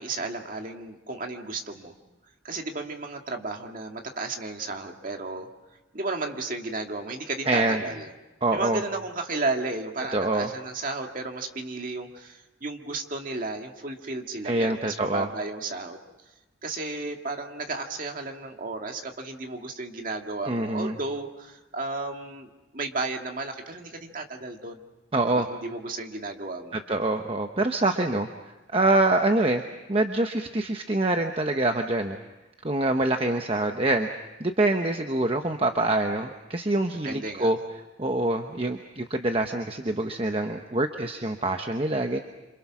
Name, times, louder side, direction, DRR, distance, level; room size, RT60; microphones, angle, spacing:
voice 1, 0.0-1.9 2.4-5.5 5.9-8.1 8.5-16.0 16.6-24.8 25.2-26.8 37.0-37.5, right 3 dB, 45° right, 3 dB, 2.2 m, -33 dB
voice 2, 7.5-7.8 8.4-8.8 10.1-10.5 14.4-15.3 20.4-21.0 25.1-25.5 26.7-28.3 28.7-29.6 29.9-32.2 32.6-34.1 34.4-37.6 38.0-42.2, right 2 dB, 30° right, 5 dB, 1.0 m, -25 dB
27.5 x 26.5 x 6.2 m, 1.1 s
head